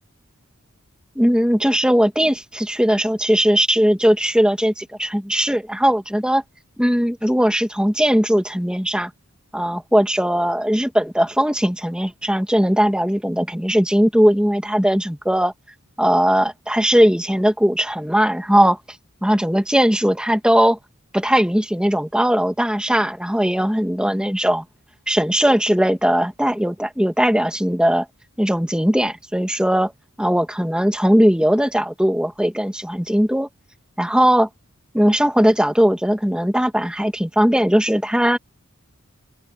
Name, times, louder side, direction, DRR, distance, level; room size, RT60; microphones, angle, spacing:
voice 1, 1.2-6.4 6.8-9.1 9.5-15.5 16.0-18.8 19.2-20.8 21.1-24.6 25.1-28.1 28.4-29.9 30.2-33.5 34.0-34.5 34.9-38.4, equal, 5° right, 2.1 m, -18 dB
open air
head